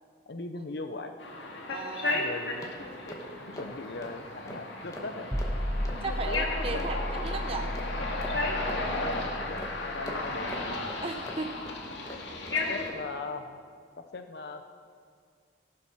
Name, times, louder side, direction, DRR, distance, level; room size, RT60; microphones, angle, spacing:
voice 1, 0.3-1.2 2.0-2.7 3.4-5.3 5.9-6.4 6.7-6.8 8.6-10.6 12.1-12.2 12.5-13.6 14.1-14.7, left 3 dB, 60° left, 6 dB, 0.6 m, -39 dB
sound 1, 1.2-12.9, left 2 dB, 85° left, 2.0 m, -34 dB
voice 2, 1.7-2.2 6.0-7.7 11.0-11.5, right 3 dB, 35° right, 5 dB, 0.7 m, -35 dB
sound 2, 2.4-12.6 12.9-13.1, left 1 dB, 20° left, 1.4 m, -45 dB
sound 3, 5.3-10.3, equal, ahead, 0.9 m, -34 dB
18.0 x 7.6 x 5.7 m, 2.1 s
head